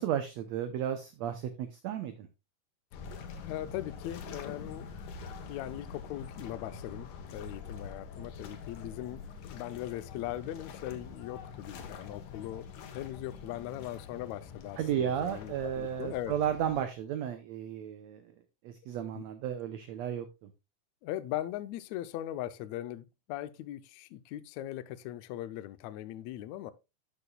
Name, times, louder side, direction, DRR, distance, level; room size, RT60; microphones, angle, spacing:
voice 1, 0.0-2.3 14.8-18.2 18.6-20.3, right 10 dB, 80° right, 1.6 m, -33 dB
sound 1, 2.9-16.8, left 5 dB, 70° left, 2.5 m, -45 dB
voice 2, 3.4-4.9 5.5-12.7 12.9-16.3 19.1-19.2 21.0-26.7, left 13 dB, 85° left, 1.6 m, -39 dB
12.0 x 6.9 x 2.3 m
omnidirectional pair, 3.9 m